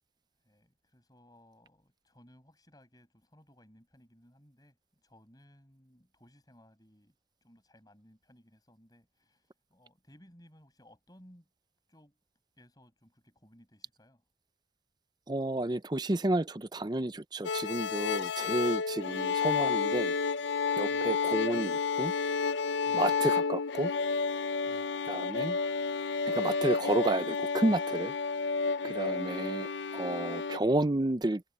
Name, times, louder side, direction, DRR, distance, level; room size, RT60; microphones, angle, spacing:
voice 1, 0.4-7.1 7.4-11.5 11.9-12.2 12.6-14.2 20.9-21.1 22.8-23.0 24.6-24.9 28.8-29.1, equal, 20° left, 7.9 m, -60 dB
voice 2, 15.3-20.1 20.8-22.1 22.9-23.9 25.1-25.6 26.3-28.1 28.8-31.4, right 1 dB, 25° right, 0.6 m, -31 dB
sound 1, 17.4-30.6, left 5 dB, 85° left, 0.6 m, -31 dB
head